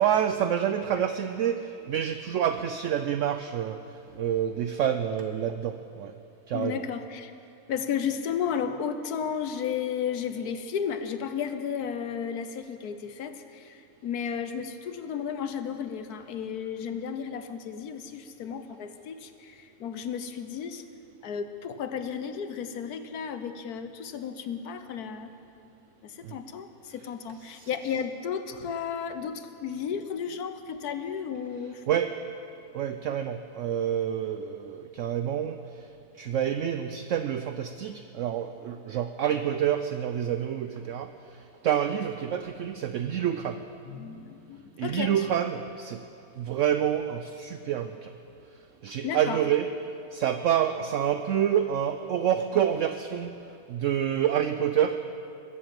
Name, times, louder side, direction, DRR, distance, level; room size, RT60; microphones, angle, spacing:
voice 1, 0.0-3.8 4.1-6.1 6.5-6.8 26.2-26.4 27.5-27.7 31.9-32.2 32.7-35.6 36.2-41.1 41.6-43.6 44.8-46.0 46.4-48.1 48.8-49.7 50.1-53.4 53.7-55.0, right 9 dB, 65° right, 9 dB, 0.8 m, -27 dB
voice 2, 6.5-7.3 7.7-20.8 21.2-25.3 26.0-31.8 43.8-45.3 49.0-49.4, left 7 dB, 80° left, 9 dB, 1.4 m, -33 dB
21.5 x 8.0 x 7.7 m, 2.6 s
omnidirectional pair, 1.6 m